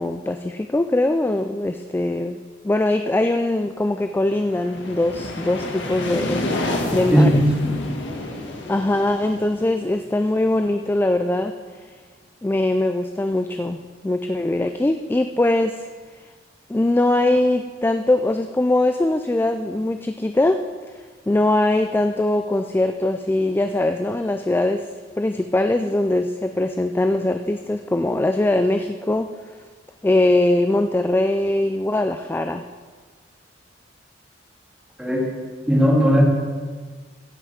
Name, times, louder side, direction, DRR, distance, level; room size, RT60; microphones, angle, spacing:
voice 1, 0.0-2.4 2.6-6.5 6.9-7.4 8.7-11.6 12.4-13.8 14.0-15.9 16.7-20.6 21.3-24.9 25.2-29.3 30.0-32.6, left 1 dB, 10° left, 7 dB, 0.3 m, -21 dB
sound 1, 4.1-10.8, left 1 dB, 85° left, 1.4 m, -30 dB
voice 2, 7.1-7.7 35.0-35.3 35.7-36.2, equal, 5° right, -3 dB, 2.3 m, -17 dB
15.5 x 5.6 x 5.0 m, 1.5 s
head